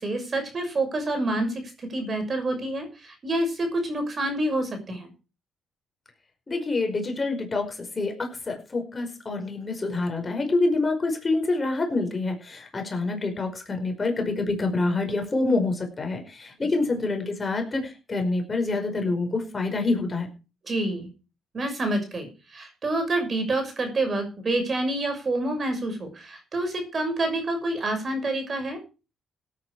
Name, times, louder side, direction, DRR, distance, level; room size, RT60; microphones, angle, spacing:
voice 1, 0.0-5.1 16.6-16.7 20.6-21.1 21.5-28.8, right 2 dB, 40° right, 5 dB, 6.2 m, -28 dB
voice 2, 6.5-20.3, left 3 dB, 30° left, 4 dB, 5.1 m, -27 dB
17.0 x 9.4 x 4.9 m, 0.33 s
cardioid pair, 90°, 0 cm